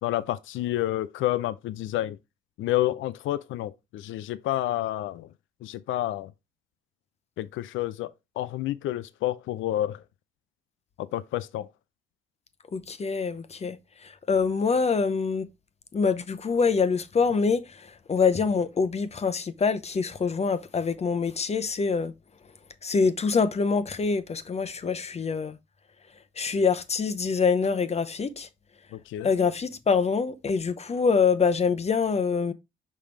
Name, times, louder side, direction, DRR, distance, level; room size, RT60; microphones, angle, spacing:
voice 1, 0.0-2.2 2.6-5.3 5.6-6.3 7.4-8.1 8.4-10.0 11.0-11.7 28.9-29.3, left 14 dB, 80° left, 0.5 m, -29 dB
voice 2, 12.7-13.8 14.0-15.5 15.9-22.1 22.8-25.6 26.4-28.5 29.2-32.5, left 5 dB, 35° left, 0.7 m, -25 dB
5.5 x 5.2 x 3.3 m
cardioid pair, 90°, 20 cm